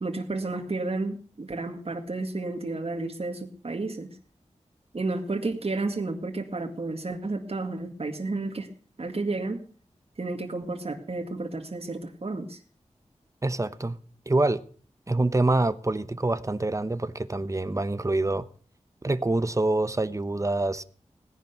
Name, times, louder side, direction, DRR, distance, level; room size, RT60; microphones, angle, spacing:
voice 1, 0.0-4.2 4.9-8.7 9.0-9.6 10.2-12.6, right 3 dB, 55° right, 2.0 m, -31 dB
voice 2, 13.4-14.0 14.3-14.6 15.1-18.5 19.0-20.8, right 2 dB, 25° right, 1.0 m, -26 dB
17.5 x 10.5 x 6.7 m
wide cardioid pair, 60°, 12 cm